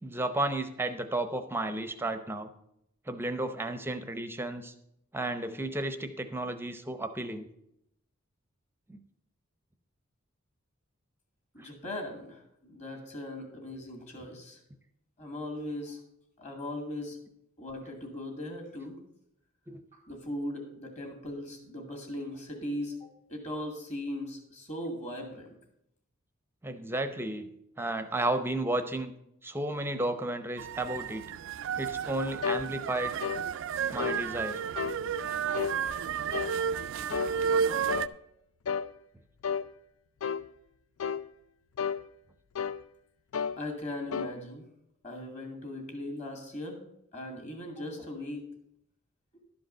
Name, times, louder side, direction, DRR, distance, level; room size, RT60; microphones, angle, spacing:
voice 1, 0.0-2.5 3.1-4.7 5.1-7.5 8.9-9.0 11.6-11.7 19.7-19.8 26.6-27.5 27.8-29.1 29.4-31.2 31.8-33.1 33.9-34.6, right 2 dB, 10° right, 9 dB, 0.6 m, -33 dB
voice 2, 11.5-14.6 15.2-16.0 16.4-17.2 17.6-19.0 19.9-25.6 43.6-44.7 45.0-46.8 47.1-48.4, left 1 dB, 35° left, 3 dB, 2.3 m, -39 dB
sound 1, 30.6-38.1, right 7 dB, 60° right, 0.3 m, -32 dB
sound 2, 32.4-32.7 33.2-33.4 34.0-34.2 34.8-35.0 35.5-35.8 36.3-36.6 37.1-37.4 37.9-38.1 38.7-38.9 39.4-39.7 40.2-40.4 41.0-41.3 41.8-42.0 42.6-42.8 43.3-43.6 44.1-44.3, left 7 dB, 70° left, 0.4 m, -32 dB
12.0 x 5.2 x 6.6 m, 0.77 s
head